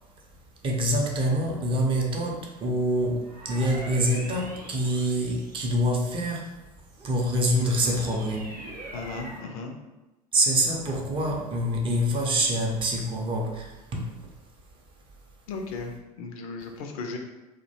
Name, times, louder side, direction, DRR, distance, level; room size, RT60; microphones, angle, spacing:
voice 1, 0.6-6.5 7.0-8.6 10.3-14.2, equal, 25° right, 0 dB, 0.5 m, -26 dB
sound 1, 3.2-6.1 6.7-9.6, right 1 dB, 85° right, 0.5 m, -43 dB
voice 2, 8.9-9.7 15.5-17.2, left 4 dB, 60° left, 3 dB, 0.4 m, -36 dB
2.4 x 2.1 x 2.7 m, 1.0 s
figure-of-eight pair, 70°, 20 cm